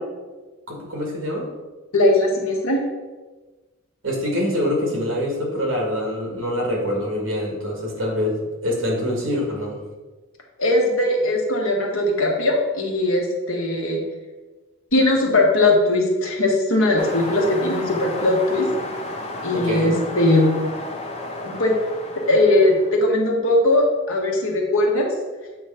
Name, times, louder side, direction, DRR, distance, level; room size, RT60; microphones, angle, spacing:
voice 1, 0.7-1.5 4.0-9.8 19.5-19.9, left 1 dB, 65° right, 0 dB, 1.8 m, -25 dB
voice 2, 1.9-2.8 10.6-14.0 14.9-18.7 19.4-20.6 21.4-21.7 22.3-25.1, left 2 dB, 70° left, 0 dB, 1.3 m, -19 dB
sound 1, 17.0-23.1, left 1 dB, 30° left, 0.7 m, -32 dB
7.8 x 3.2 x 5.6 m, 1.2 s
head